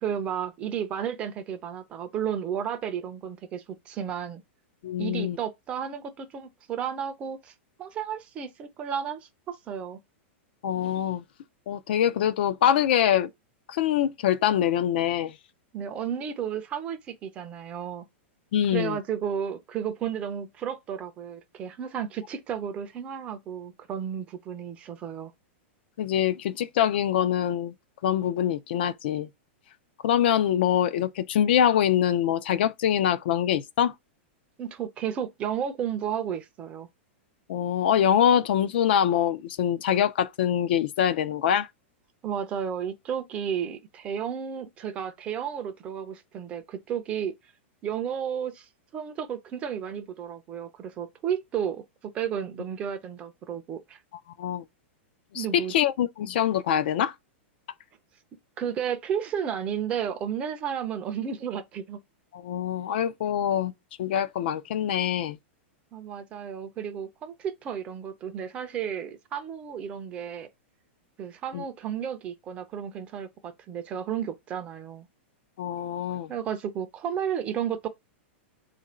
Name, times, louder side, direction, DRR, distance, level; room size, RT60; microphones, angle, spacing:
voice 1, 0.0-4.4 5.0-7.5 7.8-10.0 15.7-18.1 18.7-25.3 34.6-36.9 42.2-47.3 47.8-48.7 48.9-51.8 52.1-54.0 55.3-55.7 58.6-62.0 65.9-70.5 71.2-75.1 76.3-77.9, right 8 dB, 15° right, 0.4 m, -32 dB
voice 2, 4.8-5.4 10.6-11.2 11.7-13.3 13.7-15.4 18.5-19.0 26.0-27.7 28.0-29.3 30.0-33.9 37.5-41.7 54.4-54.6 55.3-57.1 62.3-63.7 64.0-65.4 71.5-71.6 75.6-76.3, left 10 dB, 50° left, 0.4 m, -24 dB
3.7 x 2.5 x 4.2 m
supercardioid pair, 175°, 7 cm